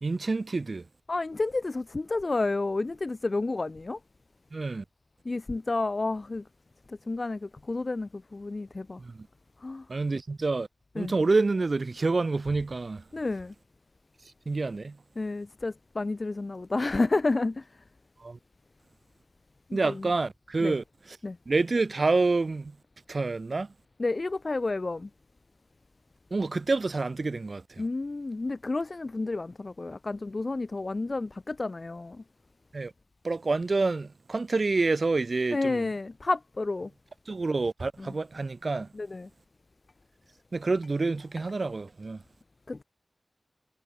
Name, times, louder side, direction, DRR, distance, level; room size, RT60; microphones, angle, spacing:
voice 1, 0.0-0.9 4.5-4.8 9.0-9.3 9.9-10.7 11.0-13.0 14.5-15.0 18.2-18.4 19.7-21.2 21.5-22.8 23.1-23.7 26.3-27.8 32.7-32.9 33.2-35.9 37.3-38.9 40.5-42.2, right 3 dB, 65° right, 0.4 m, -28 dB
voice 2, 1.1-4.0 5.2-6.5 6.9-9.0 9.6-9.9 11.0-11.1 13.1-13.5 15.2-17.7 19.7-20.1 20.6-20.8 21.2-21.4 24.0-25.1 27.8-32.2 35.5-36.9 38.0-38.1 38.9-39.3 42.7-42.8, left 3 dB, 55° left, 0.4 m, -30 dB
wide cardioid pair, 50°, 0 cm